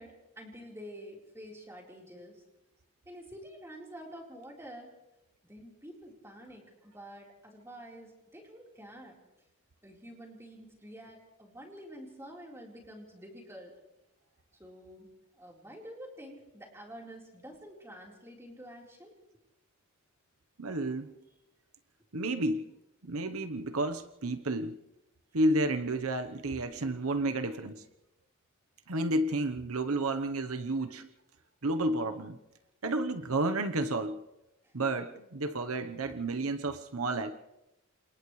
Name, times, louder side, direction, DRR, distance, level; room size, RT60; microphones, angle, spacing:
voice 1, 0.0-2.4 3.1-4.9 5.4-9.2 9.8-13.7 14.6-19.1 34.6-34.7, equal, 10° right, -2 dB, 4.2 m, -48 dB
voice 2, 20.6-21.1 22.1-22.7 23.0-24.8 25.3-27.8 28.9-31.1 31.6-32.4 32.8-34.2 34.7-37.3, right 2 dB, 80° right, 8 dB, 1.1 m, -31 dB
29.0 x 27.5 x 3.3 m, 0.93 s
head